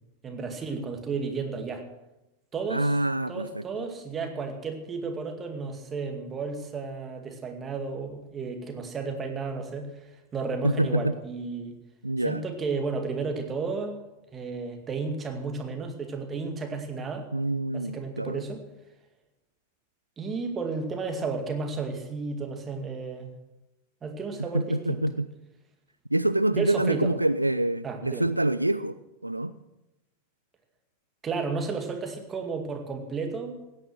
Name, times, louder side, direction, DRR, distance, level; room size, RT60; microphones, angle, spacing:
voice 1, 0.2-1.9 2.5-3.0 3.3-11.8 12.2-14.0 14.3-17.3 17.7-18.6 20.2-23.3 24.0-25.0 26.5-27.1 27.8-28.3 31.2-33.6, right 4 dB, 20° right, 5 dB, 2.2 m, -33 dB
voice 2, 2.7-3.6 10.6-11.1 12.0-12.4 17.3-18.4 24.5-25.3 26.1-29.0 29.2-29.5, right 1 dB, 85° right, 14 dB, 0.4 m, -26 dB
16.5 x 9.8 x 6.3 m, 0.97 s
figure-of-eight pair, 90°, 0 cm